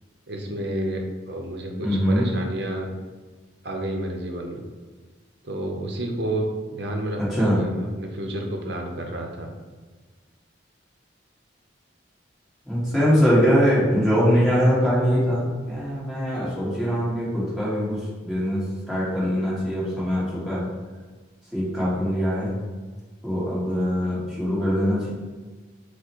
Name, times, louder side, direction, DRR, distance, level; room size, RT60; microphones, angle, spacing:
voice 1, 0.3-2.9 3.6-4.6 5.4-6.5 6.7-9.5, right 1 dB, 60° right, 2 dB, 0.7 m, -30 dB
voice 2, 1.8-2.3 7.2-7.6 12.7-20.7 21.5-22.6 23.2-25.1, equal, ahead, -9 dB, 1.5 m, -22 dB
4.6 x 2.1 x 4.4 m, 1.4 s
head